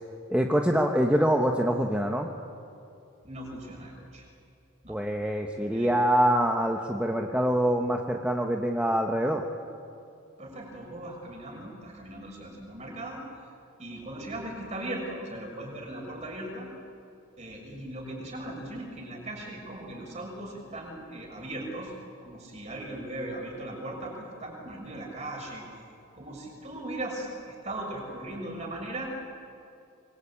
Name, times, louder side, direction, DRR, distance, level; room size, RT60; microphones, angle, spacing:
voice 1, 0.3-2.3 4.9-9.4, equal, 5° right, 2 dB, 1.1 m, -25 dB
voice 2, 3.2-4.2 4.8-5.0 5.7-5.9 10.4-13.2 13.8-16.7 17.4-21.9 22.2-25.6 26.1-29.1, right 1 dB, 35° right, 0 dB, 6.3 m, -38 dB
25.0 x 22.0 x 8.7 m, 2.6 s
head